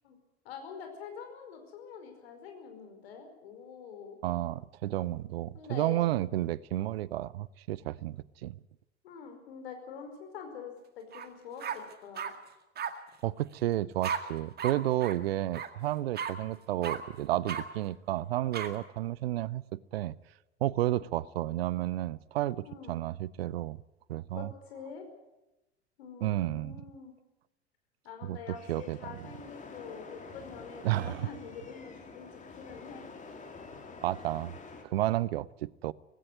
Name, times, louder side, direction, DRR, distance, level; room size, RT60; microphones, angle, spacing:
voice 1, 0.4-4.2 5.5-6.0 9.0-12.3 22.6-23.0 24.3-25.1 26.0-27.1 28.0-33.0, left 6 dB, 65° left, 5.0 m, -45 dB
voice 2, 4.2-8.5 13.2-19.6 19.9-20.1 20.6-23.8 24.1-24.5 26.2-26.7 28.2-28.4 28.7-29.0 30.8-31.3 34.0-34.5 34.9-35.9, right 14 dB, 60° right, 0.7 m, -31 dB
sound 1, 11.1-11.3 11.6-12.3 12.8-12.9 14.0-14.2 14.6-14.7 15.0-15.1 15.5-15.7 16.1-16.3 16.8-17.0 17.5-17.6 18.5-18.7, right 7 dB, 30° right, 1.9 m, -34 dB
sound 2, 28.5-34.8, left 4 dB, 20° left, 3.3 m, -48 dB
18.0 x 16.5 x 9.7 m
figure-of-eight pair, 75°, 33 cm